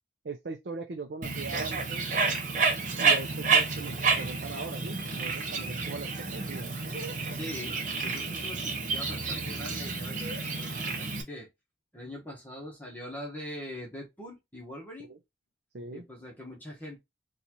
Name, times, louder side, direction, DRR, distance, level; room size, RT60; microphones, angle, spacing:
voice 1, 0.2-2.0 3.0-6.8 15.1-15.2 15.7-16.1, right 4 dB, 70° right, 0.5 m, -40 dB
Bird, 1.2-11.2, right 4 dB, 45° right, 0.8 m, -30 dB
voice 2, 7.3-11.5 11.9-15.1 15.9-17.0, left 1 dB, 10° left, 1.0 m, -42 dB
4.0 x 2.4 x 2.9 m
head